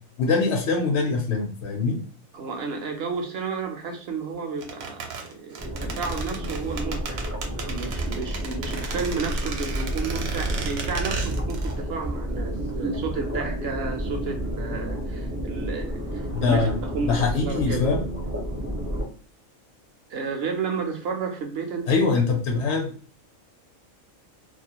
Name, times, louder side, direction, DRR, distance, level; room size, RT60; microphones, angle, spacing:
voice 1, 0.2-2.0 16.3-16.7 17.0-18.0 21.9-22.9, left 4 dB, 65° left, 2 dB, 0.8 m, -23 dB
voice 2, 2.3-18.0 20.1-22.0, right 4 dB, 65° right, 3 dB, 0.6 m, -32 dB
sound 1, 4.6-11.8 12.0-12.1, right 5 dB, 80° right, 1.0 m, -34 dB
sound 2, 5.6-19.0, equal, 20° right, 0.3 m, -30 dB
2.5 x 2.1 x 2.8 m, 0.42 s
omnidirectional pair, 1.4 m